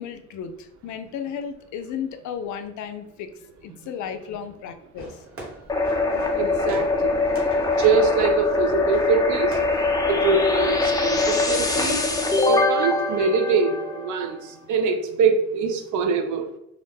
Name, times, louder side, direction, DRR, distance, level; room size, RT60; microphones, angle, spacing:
voice 1, 0.0-3.3 3.6-5.2, left 7 dB, 75° left, 0.4 m, -34 dB
Fireworks, 4.9-13.0, right 1 dB, 50° right, 1.1 m, -42 dB
Uploading Data, 5.7-14.3, left 3 dB, 10° left, 0.4 m, -23 dB
voice 2, 6.4-7.2 7.8-9.6 10.1-12.0 12.5-16.5, right 5 dB, 75° right, 0.5 m, -23 dB
2.5 x 2.1 x 3.3 m
cardioid pair, 90°, 30 cm